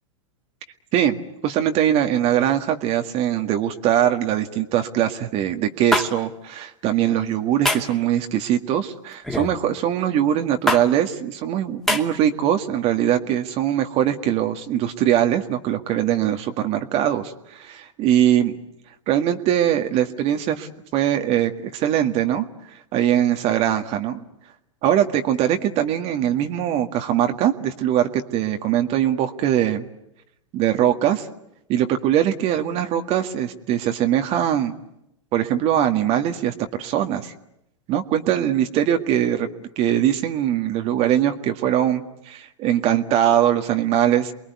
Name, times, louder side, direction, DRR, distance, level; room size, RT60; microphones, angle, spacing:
voice 1, 1.4-18.6 19.1-22.5 22.9-24.3 24.8-29.9 30.5-31.3 31.7-34.7 35.3-37.3 37.9-39.5 39.8-44.3, right 11 dB, 40° right, 6 dB, 1.9 m, -21 dB
sound 1, 5.9-6.1 7.6-7.9 9.2-9.5 10.7-10.8 11.9-12.0, left 1 dB, ahead, 2.6 m, -21 dB
28.5 x 21.5 x 9.6 m, 0.82 s
hypercardioid pair, 105°, 16 cm